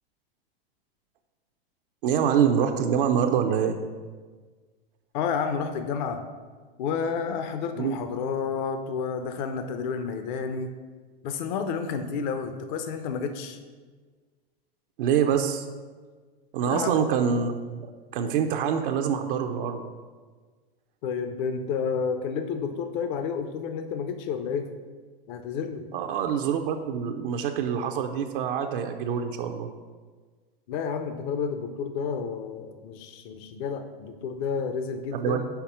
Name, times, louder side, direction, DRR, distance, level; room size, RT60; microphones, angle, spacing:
voice 1, 2.0-3.8 7.8-7.9 15.0-15.7 16.5-19.9 25.9-29.7 35.1-35.4, right 7 dB, 60° right, 5 dB, 0.6 m, -25 dB
voice 2, 5.1-6.2 6.8-10.7 11.2-13.6 16.6-17.0 21.0-24.7 25.3-25.9 30.7-35.5, left 6 dB, 50° left, 7 dB, 0.7 m, -30 dB
5.8 x 4.2 x 5.6 m, 1.4 s
hypercardioid pair, 125°, 30 cm